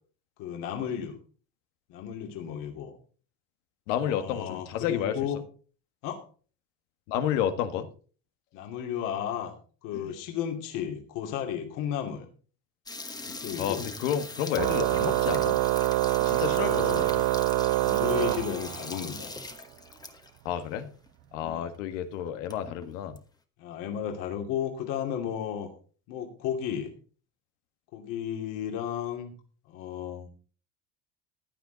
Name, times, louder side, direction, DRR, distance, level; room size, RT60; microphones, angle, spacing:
voice 1, 0.4-1.2 1.9-3.0 4.0-5.4 6.0-6.2 8.5-9.5 9.8-12.3 13.3-13.9 16.5-17.2 17.8-19.3 21.4-21.7 23.6-25.7 26.1-26.9 27.9-29.3 29.7-30.3, left 9 dB, 60° left, 2 dB, 2.7 m, -33 dB
voice 2, 3.9-5.3 7.1-7.9 9.9-10.1 13.6-15.6 16.2-17.1 20.5-20.9 21.3-23.2, left 9 dB, 90° left, 9 dB, 1.8 m, -31 dB
sound 1, 12.9-20.4 20.7-20.8 21.1-21.2 21.7-21.8 22.1-23.2, left 3 dB, 10° left, 1.2 m, -42 dB
Organ, 14.6-19.1, right 17 dB, 55° right, 0.5 m, -25 dB
15.5 x 11.0 x 4.0 m, 0.41 s
cardioid pair, 155°, 36 cm